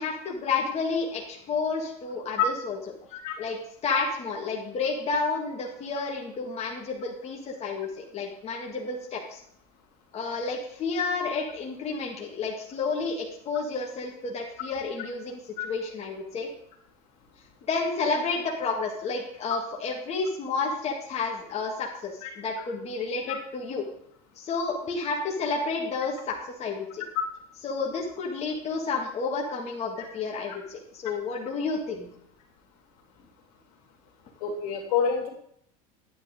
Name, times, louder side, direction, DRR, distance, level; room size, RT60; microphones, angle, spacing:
voice 1, 0.0-2.8 3.4-3.6 3.8-9.4 10.1-16.5 17.7-23.8 24.4-27.0 27.6-32.1, left 4 dB, 35° left, -1 dB, 2.0 m, -30 dB
voice 2, 34.4-35.3, left 7 dB, 75° left, 0 dB, 2.9 m, -27 dB
10.0 x 9.4 x 3.7 m, 0.66 s
supercardioid pair, 105°, 19 cm